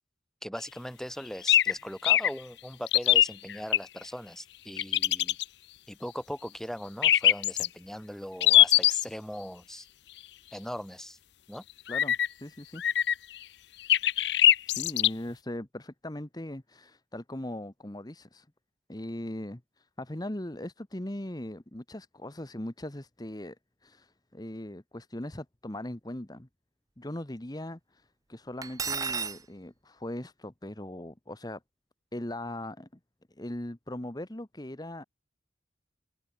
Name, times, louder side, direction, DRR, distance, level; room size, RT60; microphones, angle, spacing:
voice 1, 0.4-5.4 5.9-9.9 10.5-11.2 11.5-11.6, equal, 5° left, 3.7 m, -39 dB
sound 1, 1.5-1.7 2.0-2.3 2.9-3.8 4.8-5.4 7.0-7.7 8.4-9.0 11.9-12.3 12.8-13.4 13.9-15.1, left 13 dB, 60° left, 0.7 m, -21 dB
voice 2, 11.9-12.8 14.7-18.5 18.9-23.6 23.8-26.5 27.0-31.6 32.1-32.9 33.3-35.0, left 1 dB, 20° left, 1.2 m, -39 dB
Cutlery silverware, 28.6-29.4, right 5 dB, 20° right, 0.7 m, -32 dB
head